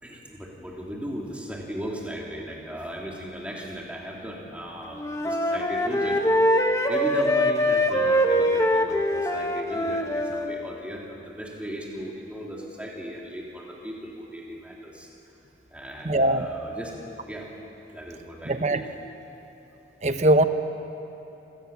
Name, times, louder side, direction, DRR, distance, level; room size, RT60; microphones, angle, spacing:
voice 1, 0.0-6.4 6.9-15.1 15.7-16.9 17.3-17.5 17.9-18.9, equal, 5° right, -2 dB, 3.1 m, -37 dB
Wind instrument woodwind instrument, 4.9-10.5, equal, 15° left, 1.1 m, -23 dB
voice 2, 16.0-16.5 18.5-18.8 20.0-20.4, right 1 dB, 40° right, 9 dB, 1.0 m, -21 dB
27.0 x 18.0 x 7.3 m, 3.0 s
head